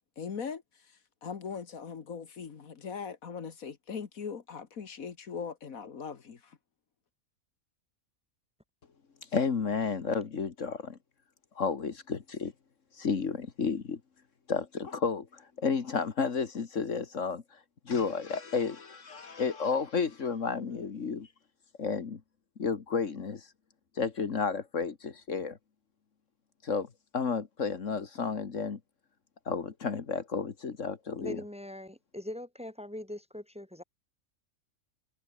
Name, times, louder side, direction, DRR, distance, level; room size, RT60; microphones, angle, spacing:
voice 1, 0.2-6.6, left 6 dB, 75° left, 2.0 m, -40 dB
voice 2, 9.2-11.0 11.5-12.5 12.9-14.0 14.5-21.3 21.8-22.2 22.6-23.5 23.9-25.6 26.6-28.8 29.5-31.4, left 5 dB, 60° left, 1.9 m, -32 dB
voice 3, 31.2-33.8, left 1 dB, 5° right, 2.2 m, -41 dB
omnidirectional pair, 1.5 m